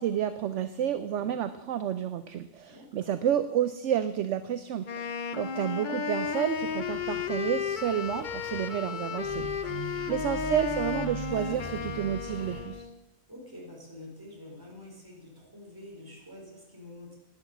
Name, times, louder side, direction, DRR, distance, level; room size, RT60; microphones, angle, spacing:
voice 1, 0.0-12.9, right 9 dB, 65° right, 12 dB, 0.9 m, -30 dB
voice 2, 1.1-1.5 2.7-3.1 9.7-10.1 13.3-17.1, left 1 dB, 15° right, -3 dB, 4.5 m, -48 dB
Wind instrument woodwind instrument, 4.8-12.9, left 6 dB, 45° left, 0.7 m, -34 dB
sound 1, 6.2-12.6, right 4 dB, 90° left, 4.5 m, -42 dB
12.0 x 10.5 x 7.8 m, 0.99 s
omnidirectional pair, 1.4 m